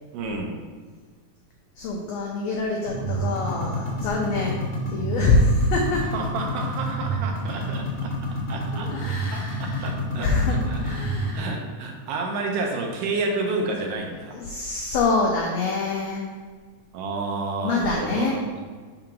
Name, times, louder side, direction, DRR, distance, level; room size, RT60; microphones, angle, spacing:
voice 1, 0.1-0.5 6.1-8.2 8.5-8.9 9.3-11.0 11.3-14.4 16.9-18.6, right 3 dB, 85° right, 1 dB, 2.5 m, -30 dB
voice 2, 1.8-6.1 8.7-9.9 10.2-11.5 14.3-16.3 17.6-18.4, left 2 dB, 90° left, -1 dB, 1.4 m, -25 dB
sound 1, 2.9-11.4, right 1 dB, 55° left, 0.8 m, -29 dB
5.7 x 3.8 x 5.9 m, 1.5 s
omnidirectional pair, 3.8 m